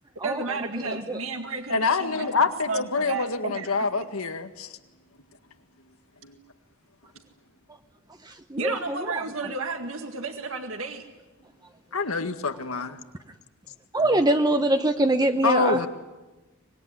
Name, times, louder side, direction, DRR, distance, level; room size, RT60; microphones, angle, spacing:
voice 1, 0.2-2.3 2.7-3.7 4.0-4.1 8.6-11.0, right 4 dB, 70° right, 5 dB, 2.0 m, -32 dB
voice 2, 0.9-1.2 8.5-9.0 13.9-15.9, right 1 dB, 20° right, 7 dB, 0.8 m, -23 dB
voice 3, 1.7-4.8 6.2-6.4 11.9-13.0 14.5-14.6 15.4-15.9, left 4 dB, 85° left, 8 dB, 1.9 m, -26 dB
25.0 x 21.0 x 9.9 m, 1.1 s
head